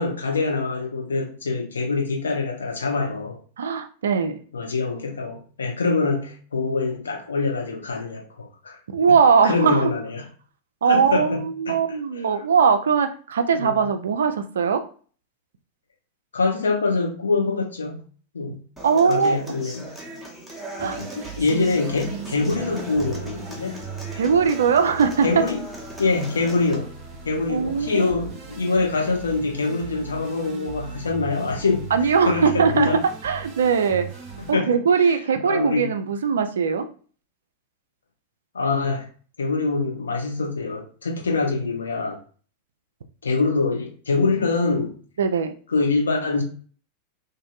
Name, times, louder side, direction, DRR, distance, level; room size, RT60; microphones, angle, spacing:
voice 1, 0.0-3.4 4.5-8.8 9.4-10.2 10.9-11.4 11.7-11.8 13.6-13.8 16.3-18.0 18.3-18.6 19.1-19.9 20.8-21.1 21.4-23.8 25.2-25.6 26.0-26.9 27.2-31.9 32.2-33.0 34.5-34.7 35.0-35.1 35.4-35.9 38.5-39.0 39.4-42.2 43.2-45.0 45.7-46.4, left 3 dB, 70° left, 0.7 m, -24 dB
voice 2, 3.6-4.4 8.9-9.9 10.8-14.8 18.8-19.4 20.8-21.0 24.2-25.4 27.5-28.0 31.9-34.1 34.5-36.9 45.2-45.5, right 6 dB, 65° right, 0.3 m, -20 dB
Human voice / Acoustic guitar, 18.8-26.7, right 1 dB, ahead, 0.8 m, -38 dB
sound 1, 20.8-34.5, right 5 dB, 35° right, 0.7 m, -39 dB
2.6 x 2.5 x 2.4 m
figure-of-eight pair, 90°, 0 cm